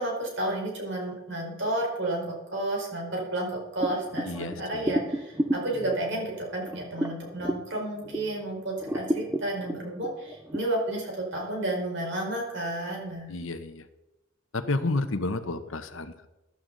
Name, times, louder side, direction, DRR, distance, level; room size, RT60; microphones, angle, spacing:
voice 1, 0.0-13.3, right 1 dB, 55° right, -1 dB, 4.7 m, -31 dB
sound 1, 3.8-8.4 8.8-10.6, right 1 dB, 10° right, 0.6 m, -32 dB
voice 2, 4.2-5.0 13.3-13.9 14.5-16.3, left 2 dB, 70° left, 10 dB, 1.0 m, -31 dB
15.5 x 11.0 x 4.0 m, 0.97 s
head